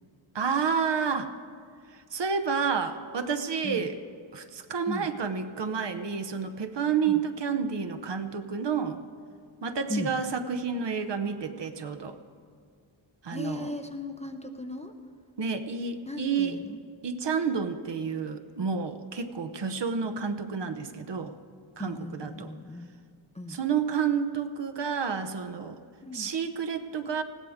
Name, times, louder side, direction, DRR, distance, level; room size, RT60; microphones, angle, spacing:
voice 1, 0.3-1.3 1.9-4.0 4.3-9.0 9.6-12.2 13.2-13.7 15.4-16.6 17.0-21.3 21.8-22.5 23.5-25.8 26.1-27.2, right 6 dB, 55° right, 8 dB, 0.9 m, -30 dB
voice 2, 3.6-4.0 4.9-5.1 7.1-7.2 9.9-10.2 13.3-15.0 16.1-16.8 21.8-22.9 23.3-23.6 26.0-26.3, left 2 dB, 15° left, 5 dB, 0.6 m, -37 dB
20.0 x 15.5 x 3.6 m, 2.2 s
wide cardioid pair, 150°, 50 cm